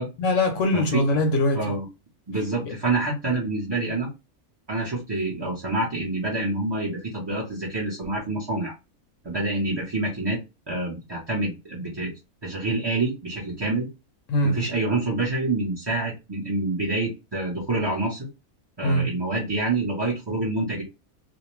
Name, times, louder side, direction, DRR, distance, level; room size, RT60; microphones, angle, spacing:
voice 1, 0.2-1.7 14.3-14.6 18.8-19.1, left 1 dB, 70° left, 0.8 m, -22 dB
voice 2, 0.7-1.0 1.5-1.9 2.3-4.1 4.7-8.7 9.2-10.4 10.7-12.1 12.4-13.9 14.4-18.3 18.8-20.8, right 2 dB, 30° right, 0.5 m, -27 dB
2.5 x 2.1 x 3.0 m
omnidirectional pair, 1.5 m